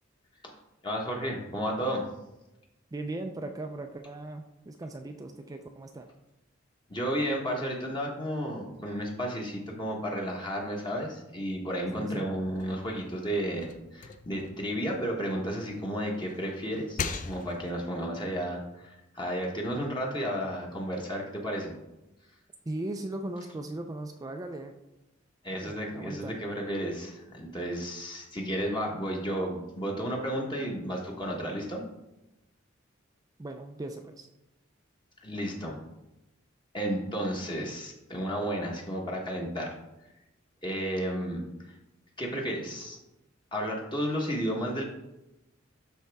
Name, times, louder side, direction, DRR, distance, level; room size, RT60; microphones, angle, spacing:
voice 1, 0.8-2.1 6.9-21.7 25.4-31.8 35.2-35.8 36.7-39.7 40.6-41.4 42.2-43.0 43.5-44.8, equal, 25° left, -1 dB, 1.2 m, -32 dB
voice 2, 2.9-6.1 12.0-12.3 22.7-24.7 25.5-26.4 33.4-34.3, right 2 dB, 20° right, 5 dB, 0.4 m, -38 dB
sound 1, 12.4-15.6 16.1-17.9, left 5 dB, 40° left, 0.5 m, -40 dB
12.0 x 4.2 x 3.5 m, 0.94 s
head